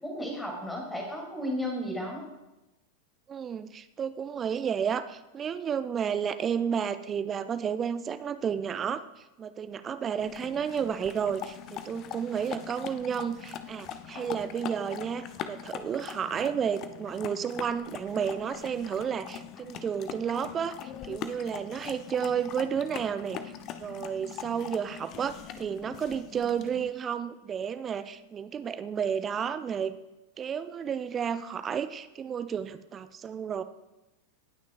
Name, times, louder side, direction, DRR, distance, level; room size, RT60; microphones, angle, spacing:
voice 1, 0.0-2.3, equal, 10° left, 0 dB, 2.8 m, -34 dB
voice 2, 3.3-9.0 9.4-23.5 23.8-29.9 30.4-33.6, right 7 dB, 25° right, 12 dB, 0.5 m, -32 dB
sound 1, 10.2-26.9, left 9 dB, 35° left, 0.5 m, -42 dB
18.0 x 6.1 x 2.5 m, 0.98 s
figure-of-eight pair, 90°, 0 cm